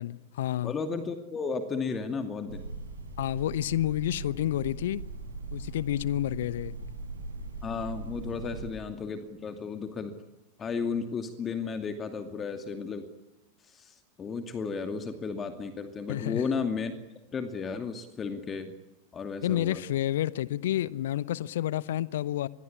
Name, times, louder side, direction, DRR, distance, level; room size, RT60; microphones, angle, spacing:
voice 1, 0.0-0.7 3.2-5.0 5.5-6.8 16.1-16.4 19.4-22.5, left 13 dB, 60° left, 1.0 m, -29 dB
voice 2, 0.6-2.6 7.6-10.2 10.6-13.1 13.6-16.9 17.3-18.7 19.1-19.8, left 5 dB, 20° left, 2.5 m, -34 dB
sound 1, 2.5-8.7, right 3 dB, 70° right, 6.9 m, -40 dB
26.0 x 22.0 x 9.9 m
figure-of-eight pair, 90°, 0 cm